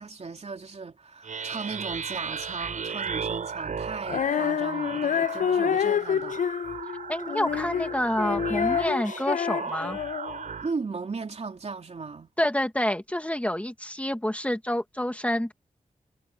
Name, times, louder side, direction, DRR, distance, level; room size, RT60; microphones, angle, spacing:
voice 1, 0.0-6.4 10.6-12.3, right 4 dB, 60° right, 3.3 m, -36 dB
sound 1, 1.2-10.7, right 6 dB, 85° right, 6.2 m, -36 dB
Female singing, 4.1-10.5, left 8 dB, 85° left, 0.5 m, -28 dB
voice 2, 7.1-10.0 12.4-15.5, left 1 dB, 10° left, 2.1 m, -28 dB
cardioid pair, 65°, 13 cm